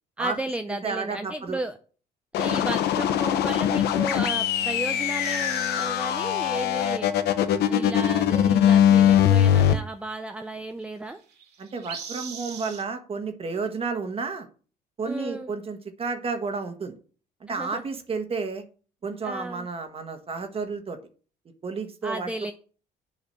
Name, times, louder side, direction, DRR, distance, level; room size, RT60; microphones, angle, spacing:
voice 1, 0.2-1.8 2.4-7.1 7.7-11.2 15.0-15.5 17.5-17.8 19.2-19.7 22.0-22.5, right 1 dB, 5° right, 7 dB, 0.6 m, -33 dB
voice 2, 0.7-1.6 11.6-14.5 15.0-16.9 17.4-18.6 19.0-21.0 21.6-22.5, right 4 dB, 35° right, 7 dB, 1.4 m, -31 dB
sound 1, 2.3-9.7, left 10 dB, 75° left, 0.9 m, -21 dB
sound 2, 5.2-5.9 7.1-7.2 7.7-7.8 8.1-8.2 10.8-10.9 11.1-12.8, right 6 dB, 85° right, 2.6 m, -39 dB
7.6 x 4.8 x 6.6 m, 0.39 s
cardioid pair, 110°, 17 cm